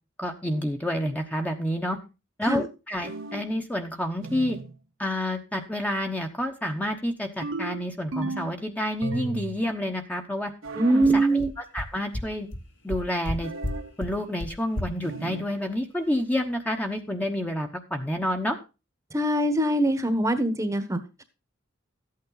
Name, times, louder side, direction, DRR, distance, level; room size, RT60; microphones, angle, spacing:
voice 1, 0.2-2.0 2.4-4.6 5.0-10.5 10.9-12.5 12.8-13.5 14.0-18.6, left 1 dB, 5° left, 3 dB, 1.1 m, -29 dB
sound 1, 3.0-3.6 4.2-4.7 7.4-8.6 9.0-9.7 10.6-11.1 13.4-13.9 15.0-15.5, right 3 dB, 80° right, 1.3 m, -35 dB
sound 2, 10.7-10.8 11.0-11.1 11.4-11.5 11.8-11.9 12.1-12.2 12.5-12.6 12.9-13.3 13.6-13.7 14.0-14.1 14.4-14.5 14.8-14.9, left 1 dB, 65° left, 2.0 m, -30 dB
voice 2, 10.7-11.5 19.1-21.2, right 1 dB, 15° right, 9 dB, 1.1 m, -23 dB
13.5 x 8.6 x 3.9 m, 0.29 s
head